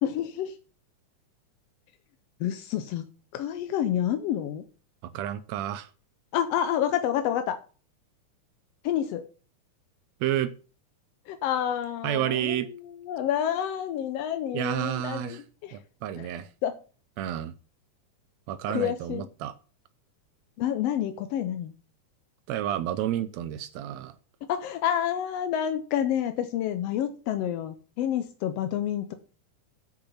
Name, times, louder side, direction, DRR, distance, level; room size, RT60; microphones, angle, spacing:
voice 1, 0.0-0.6 2.4-3.0 3.3-4.6 6.3-7.6 8.8-9.2 11.3-15.8 16.2-16.3 16.6-16.8 18.7-19.3 20.6-21.7 24.4-29.1, left 10 dB, 80° left, 9 dB, 1.4 m, -29 dB
voice 2, 5.1-5.9 10.2-10.5 12.0-12.7 14.5-15.4 15.7-16.5 17.2-17.5 18.5-19.5 22.5-24.2, right 12 dB, 80° right, 14 dB, 1.7 m, -30 dB
8.7 x 6.3 x 5.6 m, 0.38 s
omnidirectional pair, 3.5 m